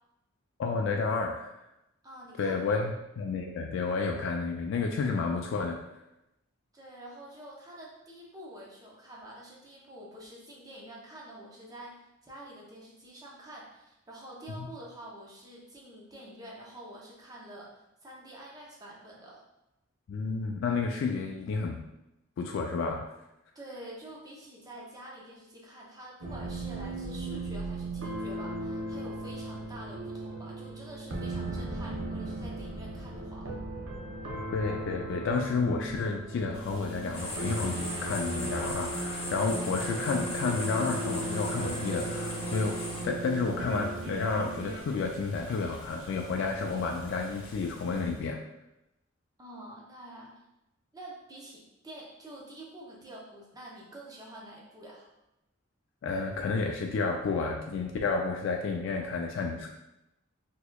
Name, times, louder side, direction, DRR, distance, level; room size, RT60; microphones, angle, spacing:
voice 1, 0.6-1.5 2.4-5.8 14.6-14.7 20.1-21.8 22.4-23.1 34.5-42.8 43.0-48.4 56.0-59.7, left 4 dB, 65° left, 2 dB, 0.3 m, -31 dB
voice 2, 2.0-2.8 6.7-17.7 18.0-19.4 23.5-33.5 49.4-50.4 50.9-55.1, right 1 dB, 20° right, -3 dB, 0.6 m, -47 dB
sound 1, 26.2-44.8, right 2 dB, 70° right, 0.5 m, -37 dB
Boiling, 36.5-48.3, left 1 dB, 45° left, 1.1 m, -49 dB
sound 2, 37.1-43.0, left 1 dB, 30° left, 0.7 m, -38 dB
4.0 x 2.8 x 2.2 m, 0.90 s
head